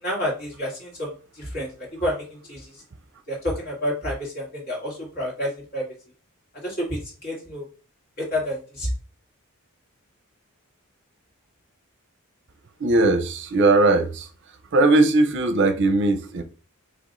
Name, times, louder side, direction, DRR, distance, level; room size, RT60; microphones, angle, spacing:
voice 1, 0.0-2.8 3.3-5.8 6.6-7.6 8.2-8.9, equal, 45° left, 2.2 m, -29 dB
voice 2, 12.8-14.3 14.7-16.4, right 2 dB, 55° right, 0.6 m, -19 dB
4.8 x 3.2 x 2.6 m
head